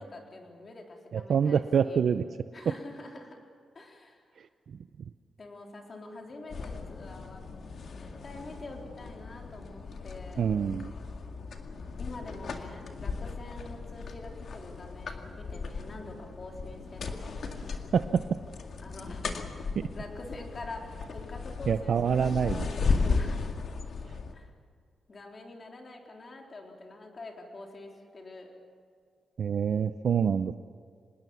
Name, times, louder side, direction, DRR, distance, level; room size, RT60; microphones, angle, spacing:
voice 1, 0.0-2.1 2.5-3.4 3.7-4.3 5.4-7.5 7.8-10.5 11.9-17.3 18.8-19.2 19.8-23.4 24.3-24.5 25.1-28.5, left 2 dB, 35° left, 1 dB, 3.8 m, -45 dB
voice 2, 1.1-2.2 4.7-4.8 10.4-10.9 17.9-18.2 21.7-22.7 29.4-30.6, right 7 dB, 60° right, 10 dB, 0.6 m, -26 dB
sound 1, 6.5-24.3, left 4 dB, 55° left, 2.1 m, -36 dB
26.0 x 20.5 x 7.1 m, 2.1 s
wide cardioid pair, 135°, 0 cm